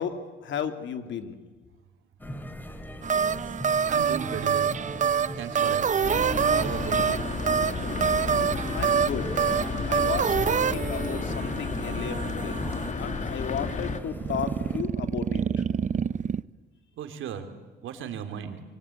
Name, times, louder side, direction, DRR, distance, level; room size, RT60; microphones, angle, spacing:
voice 1, 0.0-1.4 8.7-9.3 9.9-12.6 12.9-15.4, left 8 dB, 70° left, 9 dB, 2.6 m, -34 dB
sound 1, 2.2-14.8, equal, 10° left, 2.9 m, -40 dB
sound 2, 3.0-12.9 14.1-16.4, right 7 dB, 40° right, 0.7 m, -27 dB
voice 2, 3.9-4.8 5.4-6.1 6.6-7.3 17.0-17.5 17.8-18.6, right 8 dB, 80° right, 7 dB, 3.0 m, -36 dB
sound 3, 6.0-14.0, left 4 dB, 35° left, 2.4 m, -32 dB
25.5 x 23.5 x 8.5 m, 1.4 s
cardioid pair, 90°, 20 cm